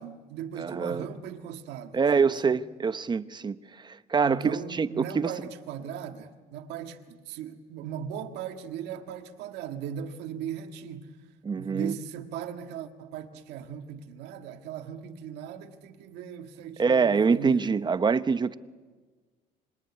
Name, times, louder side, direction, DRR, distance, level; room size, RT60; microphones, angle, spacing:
voice 1, 0.0-2.5 4.2-11.1 11.6-17.7, right 8 dB, 90° right, 1.7 m, -38 dB
voice 2, 0.6-1.0 1.9-3.6 3.8-5.3 11.4-11.9 16.8-18.5, right 5 dB, 25° right, 0.9 m, -25 dB
25.5 x 21.5 x 9.7 m
cardioid pair, 110°, 17 cm